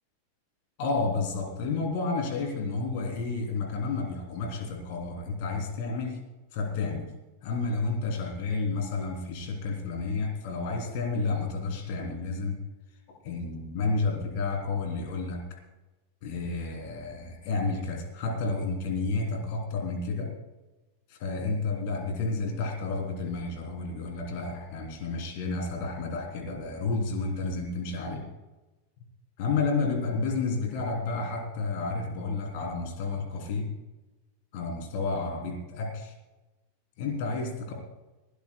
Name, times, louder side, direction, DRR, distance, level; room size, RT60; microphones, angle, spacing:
voice 1, 0.8-6.2 6.5-7.1 7.4-12.6 13.1-15.6 16.2-20.3 21.1-28.2 29.4-33.7 34.5-36.1 37.0-37.7, left 3 dB, 50° left, 2 dB, 3.5 m, -31 dB
21.0 x 16.5 x 2.3 m, 1.1 s
figure-of-eight pair, 90°, 0 cm